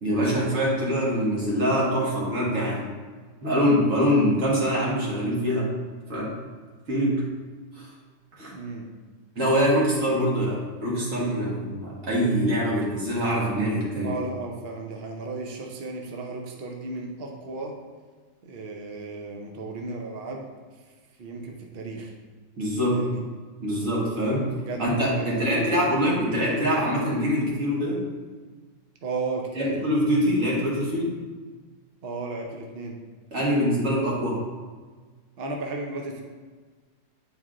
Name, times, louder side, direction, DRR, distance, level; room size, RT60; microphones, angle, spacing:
voice 1, 0.0-2.9 3.4-5.7 6.1-6.3 6.9-7.2 7.8-7.9 8.4-8.5 9.4-14.1 22.6-23.0 23.6-24.5 24.8-28.0 29.6-31.1 33.3-34.4, equal, 50° right, -5 dB, 1.8 m, -24 dB
voice 2, 8.5-8.9 14.0-17.7 18.4-20.5 21.2-22.1 22.9-23.2 24.7-25.9 29.0-29.8 32.0-33.0 35.4-36.2, right 3 dB, 65° right, 1 dB, 0.6 m, -34 dB
9.0 x 4.2 x 2.5 m, 1.4 s
omnidirectional pair, 1.9 m